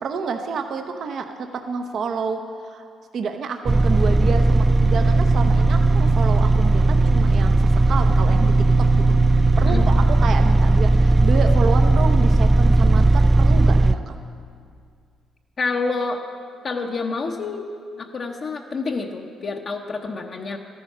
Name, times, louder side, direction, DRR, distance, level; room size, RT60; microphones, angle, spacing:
voice 1, 0.0-2.9 3.1-8.5 8.8-9.2 9.6-14.1, right 5 dB, 60° right, 5 dB, 0.8 m, -29 dB
sound 1, 3.7-14.0, right 2 dB, 20° right, 0.4 m, -16 dB
voice 2, 15.6-16.2 16.6-17.6 18.0-20.6, left 4 dB, 45° left, 1 dB, 0.8 m, -28 dB
13.0 x 10.5 x 5.5 m, 2.2 s
cardioid pair, 90°, 0 cm